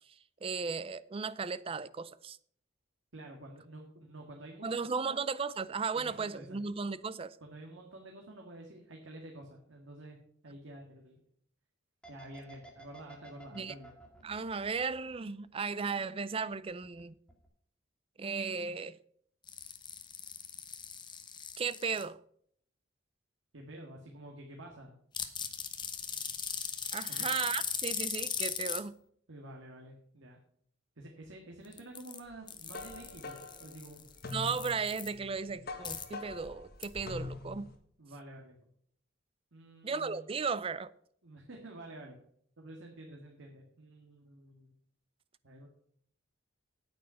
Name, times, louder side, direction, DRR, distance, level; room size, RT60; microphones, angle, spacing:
voice 1, 0.4-2.4 4.6-7.4 13.5-13.7 14.2-17.1 18.2-19.0 21.6-22.2 26.9-28.9 34.3-37.7 39.8-40.9, right 5 dB, 30° right, 0.4 m, -35 dB
voice 2, 3.1-4.7 4.9-5.2 5.9-6.6 7.4-10.2 10.4-11.2 12.1-13.9 23.5-25.0 27.1-27.3 29.3-30.4 31.0-34.1 38.0-38.6 39.5-40.3 41.2-42.2 42.6-44.7 45.4-45.7, right 1 dB, 85° right, 1.8 m, -49 dB
sound 1, 12.0-15.8 16.1-17.0 17.3-17.5, right 2 dB, 5° left, 2.2 m, -53 dB
sound 2, 19.5-22.0 25.1-28.8 31.6-32.2 32.5-35.1 35.8-36.0 36.8-36.9, left 7 dB, 25° left, 1.0 m, -39 dB
sound 3, 32.3-37.7, left 3 dB, 55° left, 1.7 m, -44 dB
9.4 x 8.9 x 5.5 m
head